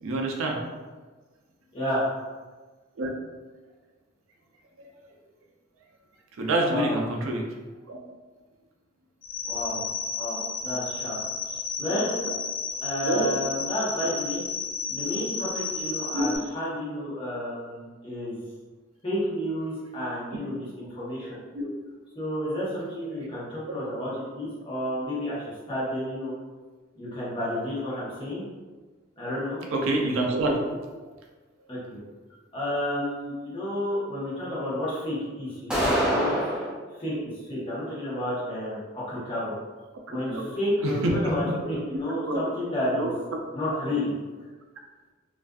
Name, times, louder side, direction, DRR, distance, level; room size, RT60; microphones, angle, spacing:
voice 1, 0.0-0.6 3.0-3.1 6.4-7.4 7.9-8.0 12.3-12.4 13.0-13.3 16.1-16.3 21.5-21.7 29.7-30.7 40.1-40.5 40.8-41.2 42.2-42.4 42.9-43.2, right 2 dB, 80° right, 1 dB, 0.4 m, -26 dB
voice 2, 1.7-2.1 6.6-7.0 9.4-9.8 10.1-11.2 11.5-12.1 12.8-14.4 14.9-18.4 19.0-21.4 22.1-26.3 27.0-28.4 29.2-29.6 31.7-32.0 32.5-36.3 37.0-39.5 40.1-43.1 43.5-44.1, left 1 dB, 25° left, -8 dB, 0.8 m, -31 dB
sound 1, 9.2-16.4, left 5 dB, 70° left, 0.5 m, -32 dB
sound 2, 35.7-36.7, equal, 5° right, 0.4 m, -24 dB
2.4 x 2.4 x 2.2 m, 1.3 s
head